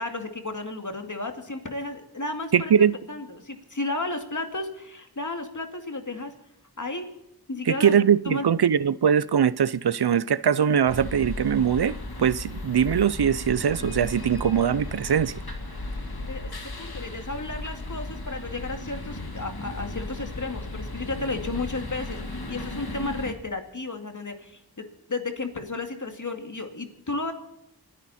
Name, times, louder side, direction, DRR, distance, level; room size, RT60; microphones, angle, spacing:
voice 1, 0.0-2.7 3.1-6.3 6.8-7.1 7.5-7.9 8.3-8.5 16.2-16.5 16.8-24.6 25.1-27.3, left 2 dB, 50° left, 2.4 m, -33 dB
voice 2, 2.5-2.9 7.7-15.3, right 8 dB, 90° right, 0.6 m, -22 dB
sound 1, 10.9-23.3, left 2 dB, 75° left, 2.1 m, -35 dB
29.5 x 10.0 x 4.3 m
wide cardioid pair, 50°, 38 cm